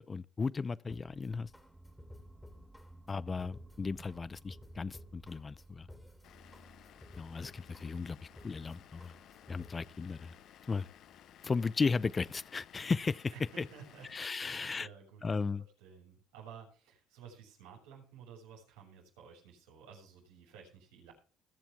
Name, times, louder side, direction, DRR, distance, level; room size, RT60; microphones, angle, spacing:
voice 1, 0.0-1.5 3.1-5.9 7.2-8.2 8.4-9.1 9.5-10.3 10.7-10.9 11.4-13.7 14.1-14.9 15.2-15.6, left 4 dB, 30° left, 0.6 m, -35 dB
sound 1, 0.9-9.9, left 1 dB, 10° left, 3.0 m, -55 dB
sound 2, 1.1-13.0, right 2 dB, 10° right, 1.5 m, -58 dB
Vehicle / Engine, 6.2-14.2, left 11 dB, 60° left, 1.0 m, -58 dB
voice 2, 13.3-15.5 15.8-21.1, right 7 dB, 90° right, 6.9 m, -53 dB
21.0 x 7.2 x 3.7 m
supercardioid pair, 85°, 0 cm